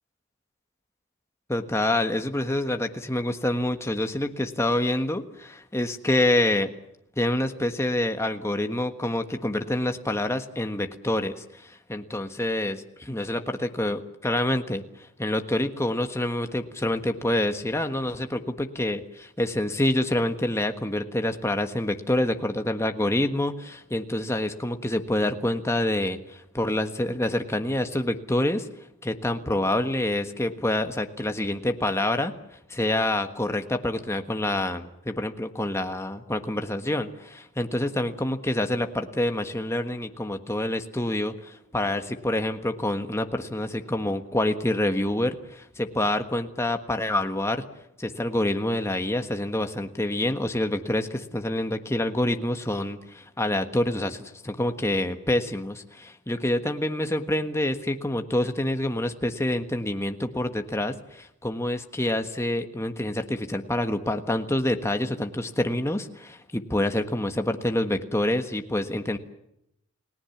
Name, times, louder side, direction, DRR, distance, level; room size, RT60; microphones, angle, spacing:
voice 1, 1.5-6.7 7.2-28.7 29.0-32.3 32.7-47.6 48.0-69.2, left 1 dB, 15° left, 6 dB, 1.4 m, -27 dB
30.0 x 18.0 x 7.3 m, 0.80 s
head